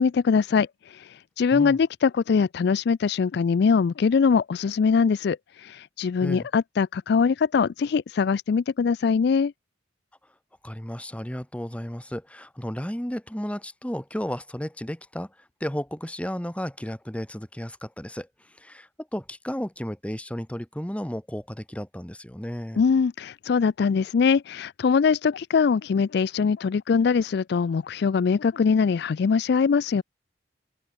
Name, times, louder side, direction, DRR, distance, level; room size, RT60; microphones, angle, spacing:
voice 1, 0.0-9.5 22.8-30.0, left 5 dB, 60° left, 0.4 m, -22 dB
voice 2, 10.6-22.8, equal, 5° left, 1.6 m, -33 dB
open air
head